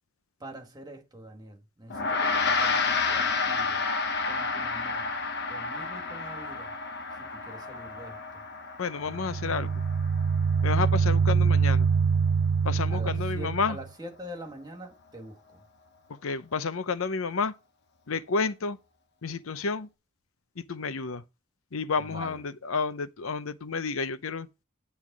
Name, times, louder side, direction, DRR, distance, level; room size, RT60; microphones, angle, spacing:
voice 1, 0.4-3.9 4.3-5.1 5.5-6.8 7.2-8.4 12.9-15.6 22.0-22.4, right 1 dB, 20° right, 1.7 m, -45 dB
Gong, 1.9-11.5, left 4 dB, 50° left, 1.1 m, -30 dB
voice 2, 8.8-9.8 10.6-11.9 12.6-13.8 16.2-17.5 18.1-18.8 19.2-19.9 20.6-21.2 21.7-24.5, left 4 dB, 75° left, 0.7 m, -30 dB
sound 1, 9.1-13.8, right 5 dB, 80° right, 0.4 m, -24 dB
9.7 x 3.5 x 6.0 m
head